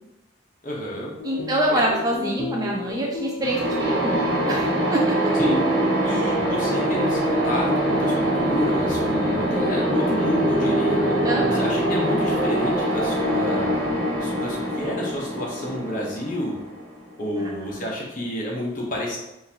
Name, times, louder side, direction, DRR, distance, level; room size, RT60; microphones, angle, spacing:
voice 1, 0.6-1.1 1.7-1.8 5.4-5.7 6.0-11.1 11.6-13.7 14.2-16.6 17.2-19.2, equal, 40° left, -3 dB, 0.8 m, -29 dB
sound 1, 1.2-12.3, left 3 dB, 80° left, 0.5 m, -32 dB
voice 2, 1.2-5.1 11.2-11.7 17.4-17.8, right 1 dB, 20° right, -1 dB, 0.3 m, -26 dB
sound 2, 3.4-17.1, right 1 dB, 80° right, 1.3 m, -24 dB
3.9 x 2.5 x 2.8 m, 0.94 s
head